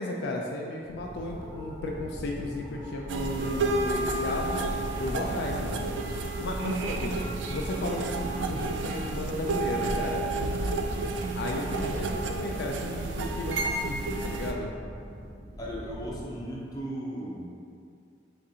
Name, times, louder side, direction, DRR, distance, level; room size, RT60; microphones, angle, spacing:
voice 1, 0.0-4.6 5.0-5.9 6.4-7.1 7.5-10.2 11.4-14.7, left 2 dB, 65° left, 0 dB, 0.4 m, -34 dB
sound 1, 0.8-16.8, equal, 30° right, 1.5 m, -42 dB
sound 2, 3.1-14.5, right 2 dB, 75° right, 0.3 m, -31 dB
voice 2, 15.6-17.5, equal, 20° left, -5 dB, 0.7 m, -37 dB
6.0 x 2.5 x 2.8 m, 2.3 s
head